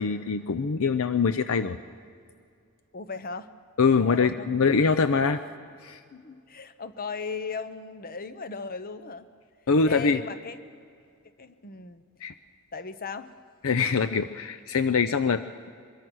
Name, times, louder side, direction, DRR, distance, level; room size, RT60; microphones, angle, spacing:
voice 1, 0.0-1.8 3.8-5.4 5.8-6.0 9.7-10.2 12.2-12.3 13.6-15.7, left 5 dB, 65° left, 11 dB, 0.6 m, -24 dB
voice 2, 2.9-3.5 4.0-4.7 6.1-9.3 9.9-10.6 11.4-12.0 12.7-13.3, left 4 dB, 45° left, 12 dB, 0.9 m, -37 dB
23.5 x 22.5 x 6.3 m, 2.3 s
head